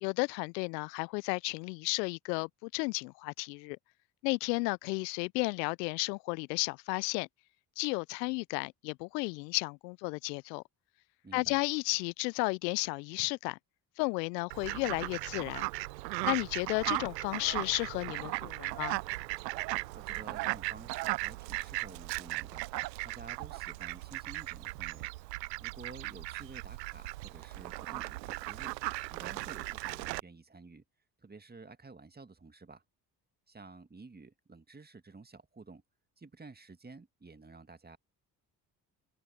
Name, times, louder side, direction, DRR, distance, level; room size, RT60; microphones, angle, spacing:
voice 1, 0.0-3.8 4.2-7.3 7.8-10.6 11.3-13.6 14.0-15.7 16.2-19.0, left 28 dB, 80° left, 0.6 m, -33 dB
voice 2, 11.2-11.6 19.7-25.1 25.6-28.7 29.1-30.8 31.2-32.8 33.5-35.8 36.2-38.0, right 3 dB, 20° right, 1.9 m, -52 dB
Fowl, 14.5-30.2, right 20 dB, 85° right, 0.7 m, -37 dB
hypercardioid pair, 50°, 49 cm